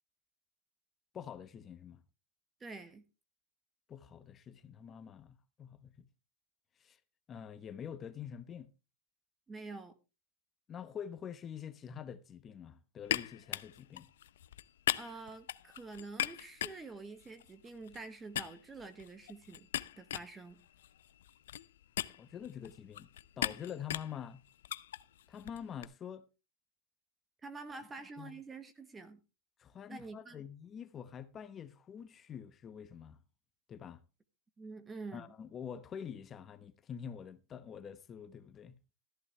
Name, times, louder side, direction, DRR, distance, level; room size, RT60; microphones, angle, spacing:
voice 1, 1.1-2.0 3.9-6.1 6.8-7.0 7.3-8.7 10.7-14.1 22.1-23.1 23.4-24.4 25.3-26.3 28.2-28.4 29.6-33.2 33.7-34.0 35.1-38.8, left 8 dB, 25° left, 0.9 m, -46 dB
voice 2, 2.6-3.0 9.5-9.9 15.0-19.7 20.0-20.6 27.4-29.2 29.9-30.4 34.6-35.3, right 3 dB, 15° right, 1.3 m, -47 dB
sound 1, 13.0-18.1 18.3-25.8, left 12 dB, 85° left, 0.6 m, -40 dB
13.5 x 11.5 x 3.3 m
supercardioid pair, 145°, 0 cm